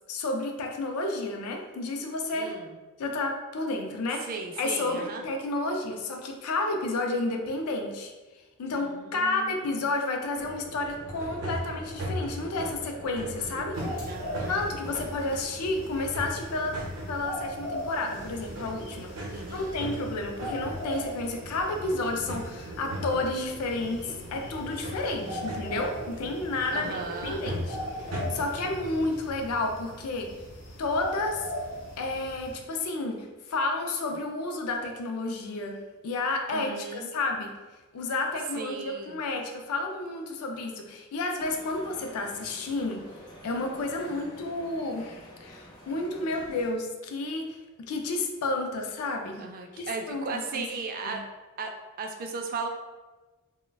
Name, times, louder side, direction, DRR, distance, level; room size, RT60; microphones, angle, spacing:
voice 1, 0.1-2.5 3.0-4.3 4.6-8.1 8.6-14.1 14.5-16.8 17.1-19.1 19.5-30.3 30.8-31.4 32.0-37.6 37.9-43.1 43.4-49.5 49.7-50.7 51.0-51.2, left 2 dB, 85° left, 3 dB, 0.4 m, -31 dB
voice 2, 2.3-2.8 4.3-5.2 8.7-9.7 14.0-14.8 19.3-19.9 25.2-25.5 26.7-27.6 36.5-37.1 38.5-39.2 44.1-44.3 49.4-51.2 51.6-51.7 52.0-52.7, right 4 dB, 40° right, 3 dB, 0.3 m, -37 dB
sound 1, 10.3-29.2, equal, 85° right, 0.6 m, -38 dB
sound 2, 13.7-32.5, left 1 dB, 60° left, 0.8 m, -40 dB
sound 3, 41.4-46.7, equal, 20° left, 0.4 m, -48 dB
2.2 x 2.1 x 3.3 m, 1.2 s
head